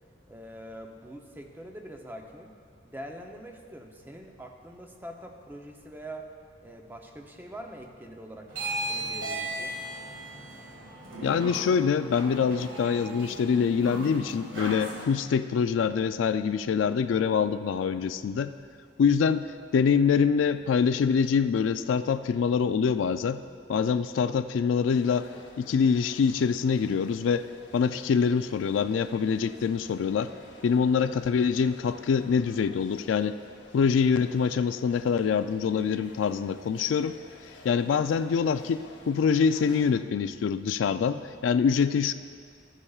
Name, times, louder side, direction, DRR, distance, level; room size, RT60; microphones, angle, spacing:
voice 1, 0.3-2.5 2.8-6.3 6.6-8.5 8.9-9.8, right 1 dB, 10° right, 2 dB, 0.7 m, -44 dB
sound 1, 8.5-15.0, right 1 dB, 80° right, 1.9 m, -36 dB
voice 2, 11.2-18.5 19.0-23.4 23.7-25.3 25.6-27.4 27.7-30.3 30.6-33.4 33.7-37.2 37.6-42.1, left 6 dB, 85° left, 11 dB, 0.3 m, -25 dB
sound 2, 24.9-39.9, left 2 dB, 70° left, 0.9 m, -52 dB
13.5 x 9.8 x 2.4 m, 2.1 s
head